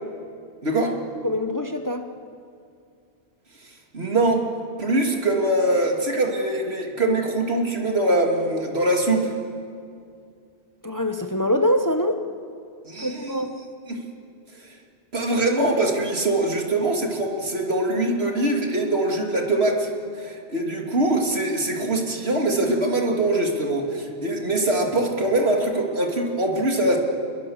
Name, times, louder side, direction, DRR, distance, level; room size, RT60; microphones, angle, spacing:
voice 1, 0.6-1.0 3.6-4.4 4.8-9.3 12.8-13.4 13.9-14.0 14.6-14.7 15.1-27.0, right 1 dB, 70° right, 1 dB, 2.9 m, -23 dB
voice 2, 1.2-2.1 10.8-12.2 13.0-13.5, left 1 dB, 20° left, 6 dB, 0.9 m, -24 dB
27.5 x 21.0 x 7.3 m, 2.4 s
omnidirectional pair, 1.1 m